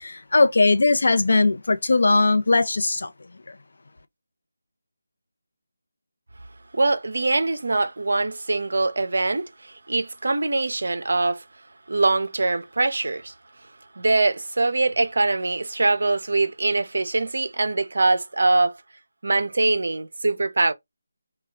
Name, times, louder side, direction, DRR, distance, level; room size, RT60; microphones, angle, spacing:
voice 1, 0.0-3.1, left 3 dB, 60° left, 0.5 m, -19 dB
voice 2, 6.7-11.4 11.9-13.3 14.0-18.8 19.2-20.7, right 2 dB, 65° right, 0.5 m, -23 dB
2.2 x 2.2 x 3.5 m
figure-of-eight pair, 160°, 0 cm